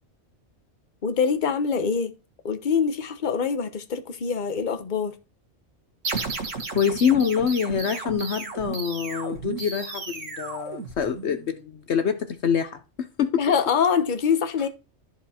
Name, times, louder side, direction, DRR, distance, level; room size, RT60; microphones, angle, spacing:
voice 1, 1.0-2.1 2.4-5.1 13.4-14.7, left 6 dB, 40° left, 1.1 m, -24 dB
sound 1, 6.0-11.5, right 4 dB, 80° right, 2.0 m, -34 dB
voice 2, 6.7-13.4, left 7 dB, 65° left, 1.1 m, -25 dB
13.5 x 4.8 x 4.3 m
omnidirectional pair, 1.3 m